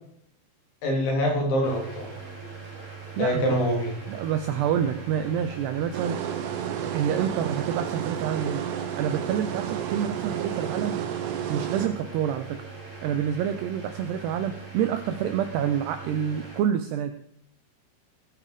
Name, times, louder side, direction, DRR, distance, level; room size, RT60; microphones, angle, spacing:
voice 1, 0.8-2.1 3.2-3.9, equal, 65° left, 1 dB, 5.3 m, -25 dB
sound 1, 1.6-16.6, right 4 dB, 20° right, 3.0 m, -41 dB
voice 2, 3.2-3.6 4.1-6.3 6.8-8.6 9.0-11.0 11.5-12.7 13.0-17.1, right 9 dB, 90° right, 9 dB, 2.4 m, -28 dB
sound 2, 5.9-11.9, right 9 dB, 75° right, 2.6 m, -31 dB
18.5 x 8.6 x 5.1 m, 0.66 s
omnidirectional pair, 5.7 m